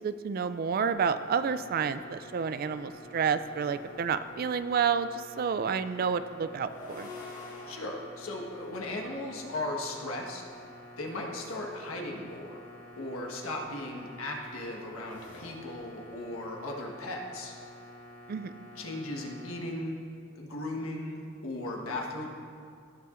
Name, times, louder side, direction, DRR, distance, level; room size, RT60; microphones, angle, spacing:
voice 1, 0.0-7.1 18.3-18.5, right 6 dB, 45° right, 12 dB, 0.3 m, -30 dB
sound 1, 0.9-19.6, left 1 dB, 55° left, 1.4 m, -50 dB
sound 2, 2.8-4.6 6.4-9.7 11.0-11.7 13.1-16.6, left 2 dB, 40° left, 1.7 m, -50 dB
voice 2, 7.7-10.4 11.0-12.6 13.0-17.6 18.7-20.0 20.3-22.3, left 1 dB, 85° left, 0 dB, 1.4 m, -37 dB
17.5 x 6.8 x 2.5 m, 2.3 s
head